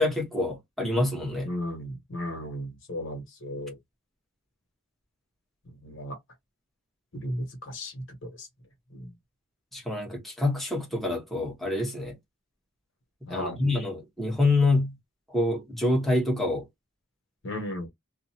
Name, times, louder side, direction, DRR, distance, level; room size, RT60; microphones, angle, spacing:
voice 1, 0.0-1.5 9.7-12.2 13.3-14.9 15.3-16.7, left 2 dB, ahead, 0.7 m, -26 dB
voice 2, 1.4-3.8 5.7-6.2 7.1-8.5 8.9-9.1 13.3-13.6 17.4-17.9, left 1 dB, 60° left, 1.1 m, -35 dB
2.5 x 2.0 x 2.8 m
head